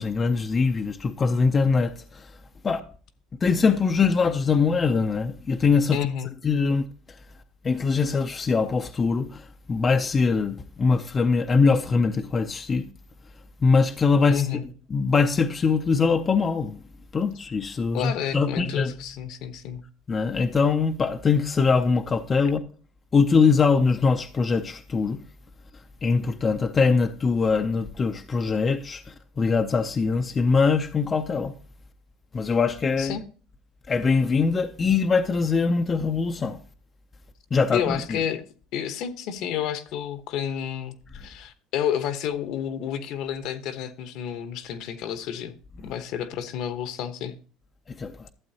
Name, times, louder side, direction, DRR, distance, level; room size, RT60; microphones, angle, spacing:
voice 1, 0.0-2.3 2.6-2.8 3.4-6.0 6.4-6.9 7.6-12.9 13.6-14.5 14.9-16.8 17.1-18.9 20.1-22.6 23.1-25.2 26.0-31.5 32.3-33.2 33.9-36.6 37.5-38.2 45.8-45.9 47.9-48.3, left 4 dB, 25° left, 0.4 m, -22 dB
voice 2, 5.9-6.3 14.3-14.6 17.9-19.8 33.0-33.2 37.7-38.4 38.7-45.5 45.8-47.4, left 9 dB, 65° left, 0.9 m, -30 dB
12.0 x 7.9 x 2.8 m
cardioid pair, 140°, 0 cm